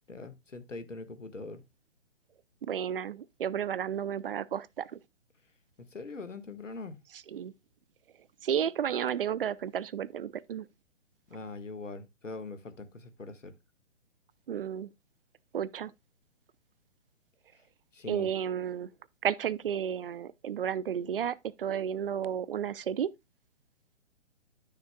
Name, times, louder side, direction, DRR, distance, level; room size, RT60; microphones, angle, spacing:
voice 1, 0.1-1.6 5.9-7.0 11.3-13.5 17.9-18.3, left 3 dB, 90° left, 1.6 m, -42 dB
voice 2, 2.6-5.0 7.3-7.5 8.4-10.7 14.5-14.9 15.5-15.9 18.1-18.9 19.2-23.1, right 9 dB, 50° right, 0.6 m, -32 dB
12.0 x 6.6 x 2.2 m
figure-of-eight pair, 135°, 36 cm